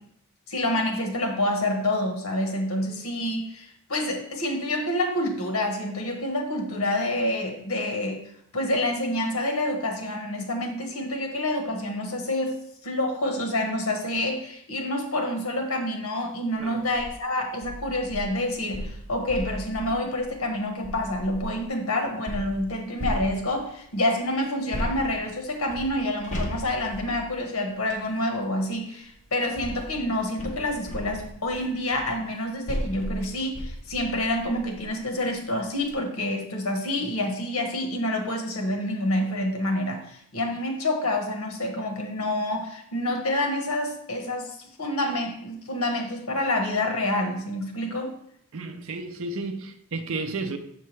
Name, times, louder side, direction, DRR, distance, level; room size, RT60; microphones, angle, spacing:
voice 1, 0.5-8.2 8.5-48.2, left 1 dB, 75° left, 1.1 m, -28 dB
sound 1, 16.8-17.1 17.6-21.7 22.3-23.8 24.7-28.1 29.0-35.0 35.4-35.5 35.8-35.9, equal, 35° left, 1.0 m, -36 dB
voice 2, 48.5-50.6, right 3 dB, 65° right, 0.6 m, -32 dB
7.0 x 4.5 x 3.2 m
head